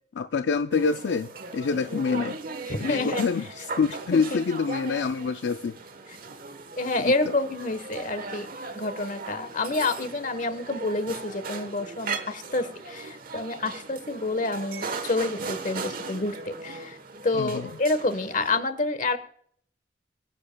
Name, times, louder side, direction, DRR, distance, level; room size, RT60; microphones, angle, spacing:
voice 1, 0.2-2.4 2.8-5.7 7.0-7.1 17.3-17.7, left 5 dB, 75° left, 9 dB, 0.4 m, -26 dB
sound 1, 0.7-18.6, right 4 dB, 55° right, 1.1 m, -38 dB
voice 2, 2.7-3.3 4.1-4.4 6.8-8.5 8.7-17.0 17.2-19.2, left 2 dB, 45° left, 11 dB, 1.2 m, -28 dB
24.5 x 10.0 x 2.2 m, 0.63 s
head